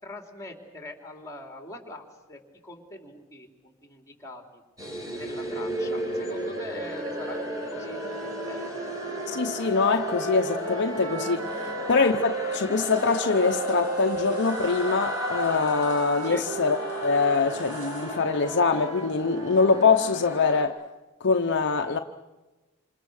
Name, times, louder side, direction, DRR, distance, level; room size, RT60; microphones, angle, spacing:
voice 1, 0.0-4.6 5.2-8.7 11.6-11.8 16.2-16.5 21.8-22.0, left 1 dB, 15° left, 3.6 m, -43 dB
sound 1, 4.8-20.6, left 1 dB, 15° right, 4.8 m, -34 dB
sound 2, 5.7-12.6 13.3-20.5, right 3 dB, 70° right, 1.7 m, -37 dB
voice 2, 9.3-20.8 21.2-22.0, left 4 dB, 55° left, 0.9 m, -24 dB
sound 3, 12.8-18.1, right 2 dB, 85° right, 7.9 m, -53 dB
27.5 x 27.5 x 6.6 m
head